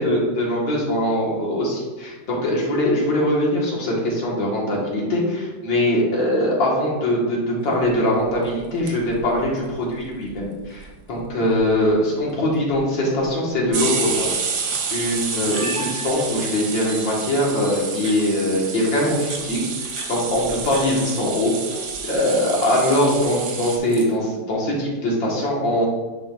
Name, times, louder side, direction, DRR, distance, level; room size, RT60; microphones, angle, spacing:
voice 1, 0.0-14.6 14.9-25.9, left 1 dB, 65° left, -4 dB, 2.4 m, -22 dB
sound 1, 8.6-9.4 9.7-9.8 10.0-10.1 10.2-10.8 11.2-11.3 11.6-11.9 12.7-12.8 13.7-23.8, right 5 dB, 60° right, 1.3 m, -29 dB
Camera, 13.7-14.0 14.6-14.7 14.9-16.5 16.9-17.0 17.6-18.2 19.0-20.8 21.1-21.8 22.1-22.5 23.3-24.1, right 2 dB, 40° right, 1.5 m, -36 dB
9.8 x 5.2 x 2.5 m, 1.2 s
omnidirectional pair, 2.2 m